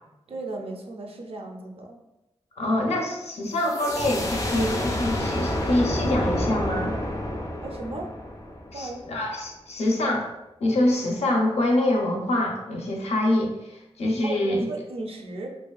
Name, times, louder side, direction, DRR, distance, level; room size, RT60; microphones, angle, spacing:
voice 1, 0.3-2.0 7.6-8.1 8.7-9.0 14.2-15.5, right 2 dB, 65° right, 2 dB, 0.4 m, -35 dB
voice 2, 2.6-6.9 8.7-10.3 10.6-14.7, left 1 dB, 85° left, 1 dB, 0.5 m, -25 dB
sound 1, 3.6-9.1, left 1 dB, 35° left, 0.3 m, -29 dB
2.5 x 2.3 x 2.2 m, 0.95 s
wide cardioid pair, 75°, 11 cm